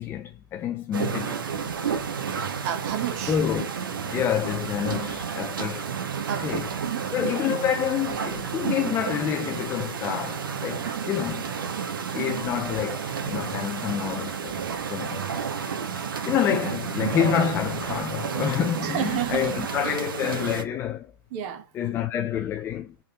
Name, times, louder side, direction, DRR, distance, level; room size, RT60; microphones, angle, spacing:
voice 1, 0.0-1.7 3.3-3.7 4.1-5.9 6.4-6.7 7.1-11.4 12.1-14.6 14.9-15.3 15.9-21.1 21.7-23.0, left 9 dB, 15° left, 0.4 m, -28 dB
sound 1, 0.9-20.6, right 6 dB, 60° right, 1.1 m, -31 dB
voice 2, 2.6-3.4 6.2-7.1 7.5-7.7 10.8-11.1 12.1-12.5 18.8-20.0 21.3-21.7, right 10 dB, 40° right, 1.4 m, -32 dB
5.4 x 3.7 x 4.7 m
figure-of-eight pair, 115°, 13 cm